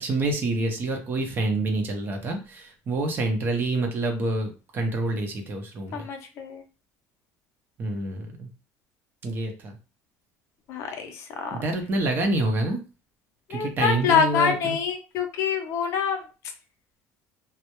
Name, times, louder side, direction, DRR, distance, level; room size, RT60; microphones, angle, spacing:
voice 1, 0.0-6.1 7.8-8.5 9.2-9.8 11.5-12.8 13.5-14.8, right 2 dB, 35° right, 4 dB, 0.6 m, -27 dB
voice 2, 5.9-6.6 10.7-11.6 13.5-16.2, left 6 dB, 55° left, 5 dB, 0.5 m, -25 dB
2.2 x 2.0 x 2.8 m, 0.33 s
cardioid pair, 145°, 6 cm